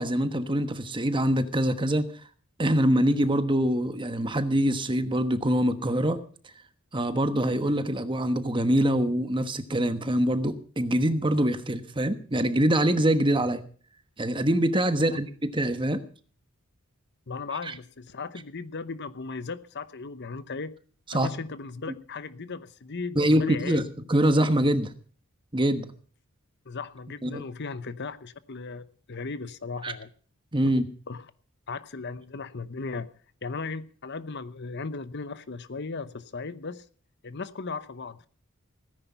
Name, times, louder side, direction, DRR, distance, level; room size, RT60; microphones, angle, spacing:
voice 1, 0.0-2.1 2.6-6.2 6.9-13.6 14.2-16.0 21.1-21.3 23.2-24.9 25.5-25.9 27.2-27.4 29.8-29.9 30.5-30.9, right 1 dB, 20° right, 1.2 m, -24 dB
voice 2, 17.3-20.7 21.1-23.9 26.7-30.1 31.1-31.3 31.7-33.1 33.4-36.8 37.2-38.3, left 4 dB, 50° left, 0.9 m, -36 dB
17.5 x 10.5 x 5.6 m
head